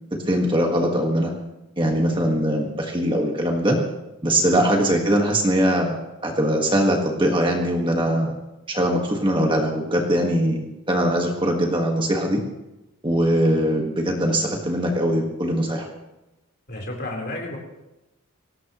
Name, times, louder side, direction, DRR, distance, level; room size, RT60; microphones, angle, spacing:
voice 1, 0.2-1.3 1.8-3.8 4.2-8.3 8.7-12.4 13.0-15.9, equal, 20° right, 1 dB, 1.6 m, -21 dB
voice 2, 16.7-17.6, left 1 dB, 45° left, -1 dB, 4.0 m, -32 dB
23.5 x 18.5 x 3.1 m, 0.99 s
head